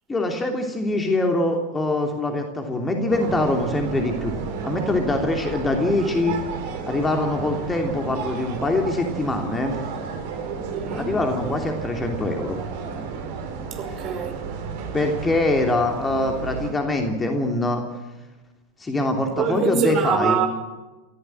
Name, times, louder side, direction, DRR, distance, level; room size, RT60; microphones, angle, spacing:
voice 1, 0.1-4.4 4.6-6.4 6.9-9.7 10.9-12.6 13.9-14.0 14.9-17.8 18.8-20.4, left 2 dB, 15° left, 3.0 m, -23 dB
sound 1, 3.1-16.7, right 5 dB, 50° right, 4.1 m, -32 dB
voice 2, 10.7-11.2 13.7-14.4 19.4-20.5, right 7 dB, 35° right, 5.3 m, -24 dB
25.0 x 16.5 x 7.8 m
figure-of-eight pair, 90°, 0 cm